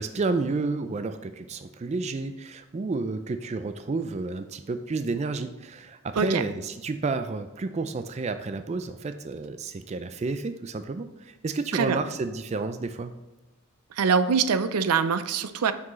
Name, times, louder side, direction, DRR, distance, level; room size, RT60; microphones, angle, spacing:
voice 1, 0.0-13.1, right 3 dB, 30° right, 9 dB, 0.3 m, -31 dB
voice 2, 13.9-15.7, right 6 dB, 85° right, 12 dB, 0.5 m, -23 dB
7.2 x 6.0 x 3.1 m, 1.1 s
head